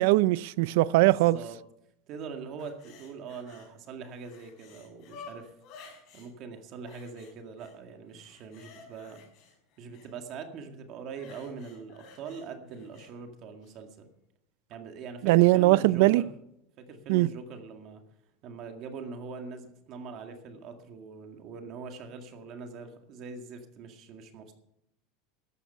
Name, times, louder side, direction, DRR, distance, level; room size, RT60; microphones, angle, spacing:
voice 1, 0.0-1.4 15.2-16.2 17.1-17.3, right 19 dB, 60° right, 0.4 m, -21 dB
voice 2, 1.0-1.6 2.1-5.5 6.1-9.2 9.8-14.1 14.7-16.3 16.8-18.0 18.4-24.5, right 5 dB, 35° right, 2.0 m, -42 dB
sound 1, 2.6-3.7 4.0-6.3 6.9-7.8 8.1-10.1 11.1-13.1 13.6-13.8, left 4 dB, 40° left, 5.1 m, -52 dB
13.5 x 12.5 x 5.5 m
supercardioid pair, 180°, 0 cm